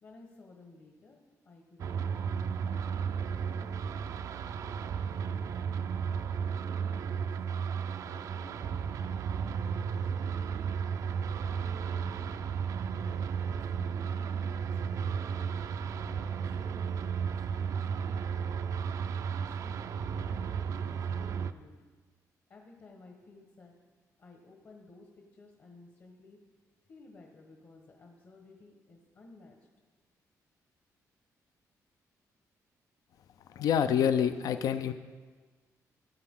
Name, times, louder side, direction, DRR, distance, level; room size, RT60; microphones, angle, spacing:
voice 1, 0.0-3.9 4.3-6.5 6.9-7.3 8.0-10.9 11.4-12.3 12.9-13.2 13.5-15.3 15.9-18.7 19.2-19.8 20.2-21.8 22.5-23.7 24.2-26.4 26.9-29.6, left 3 dB, 45° left, 1 dB, 1.2 m, -55 dB
sound 1, 1.8-21.5, right 7 dB, 60° right, 0.4 m, -34 dB
voice 2, 33.5-34.9, left 8 dB, 75° left, 11 dB, 0.5 m, -27 dB
15.5 x 7.9 x 3.7 m, 1.4 s
cardioid pair, 145°, 6 cm